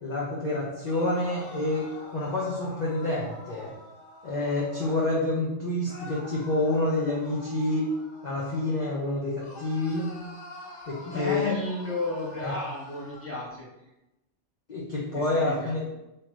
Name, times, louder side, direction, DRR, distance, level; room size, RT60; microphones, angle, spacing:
voice 1, 0.0-3.7 4.2-7.9 8.2-10.1 10.9-11.4 12.4-12.5 14.7-15.8, left 2 dB, 45° left, -5 dB, 0.7 m, -28 dB
sound 1, 0.8-5.1 5.9-9.0 9.4-13.3, left 1 dB, 70° left, 1.3 m, -46 dB
voice 2, 11.0-13.9 15.1-15.8, left 2 dB, 10° left, -6 dB, 1.0 m, -33 dB
3.6 x 2.8 x 3.1 m, 0.93 s
omnidirectional pair, 1.2 m